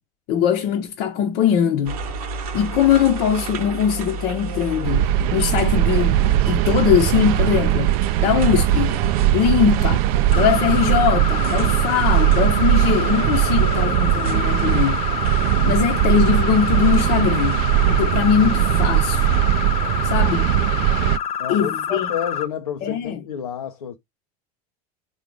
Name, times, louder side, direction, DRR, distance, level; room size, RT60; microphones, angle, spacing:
voice 1, 0.3-2.0 2.5-5.0 5.3-7.9 8.2-8.9 9.3-10.1 10.3-15.0 15.6-17.6 17.9-19.3 20.0-20.5 21.5-22.1 22.8-23.2, left 9 dB, 55° left, 0.8 m, -21 dB
sound 1, 1.8-19.4, right 4 dB, 70° right, 1.0 m, -33 dB
sound 2, 4.8-21.2, right 13 dB, 55° right, 0.4 m, -19 dB
sound 3, 10.3-22.4, left 8 dB, 35° left, 0.5 m, -27 dB
voice 2, 19.8-20.3 21.4-24.0, left 8 dB, 85° left, 0.6 m, -30 dB
3.9 x 2.5 x 4.7 m
hypercardioid pair, 80°, 19 cm